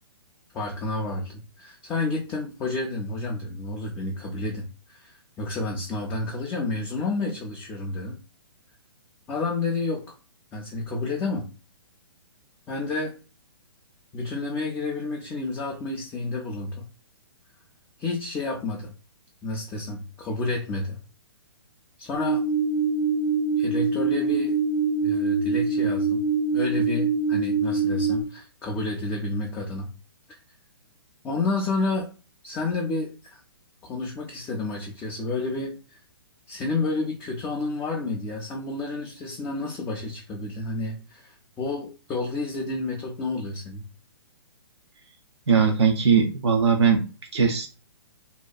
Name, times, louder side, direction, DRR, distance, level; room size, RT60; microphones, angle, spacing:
voice 1, 0.5-8.2 9.3-10.0 10.5-11.5 12.7-13.1 14.1-16.9 18.0-18.9 19.4-21.0 22.0-22.4 23.6-24.6 25.0-26.2 26.5-29.9 30.3-30.4 31.2-32.1 32.4-33.4 33.8-36.0 36.5-43.9, left 3 dB, 15° left, -1 dB, 0.4 m, -30 dB
sound 1, 22.1-28.2, right 4 dB, 50° left, 0.7 m, -24 dB
voice 2, 45.5-47.0 47.3-47.7, right 6 dB, 80° right, 2 dB, 0.5 m, -20 dB
2.7 x 2.2 x 2.2 m, 0.33 s
figure-of-eight pair, 125°, 14 cm